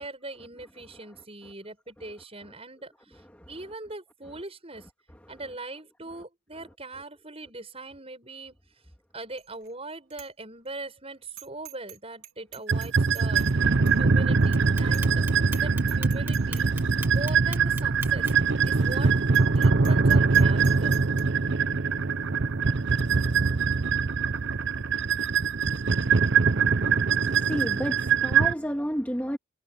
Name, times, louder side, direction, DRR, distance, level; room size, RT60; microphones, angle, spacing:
voice 1, 0.0-4.9 5.3-8.6 9.1-13.7 14.0-16.7 17.1-18.3 18.6-21.0, right 2 dB, 25° right, 7.7 m, -41 dB
Bicycle bell, 9.4-9.7 10.1-10.3 10.7-10.8 11.4-12.0 12.2-13.5 13.9-14.0 14.4-14.5 14.9-15.2 15.5-15.6 15.9-16.7 17.1-17.2 18.0-18.1 18.3-18.4 18.8-18.9 19.3-21.2, right 13 dB, 85° right, 3.6 m, -45 dB
sound 1, 12.7-28.5, right 5 dB, 55° right, 0.7 m, -23 dB
Clock, 14.5-18.5, right 3 dB, 10° right, 1.5 m, -37 dB
voice 2, 26.4-29.4, equal, 5° left, 2.1 m, -33 dB
head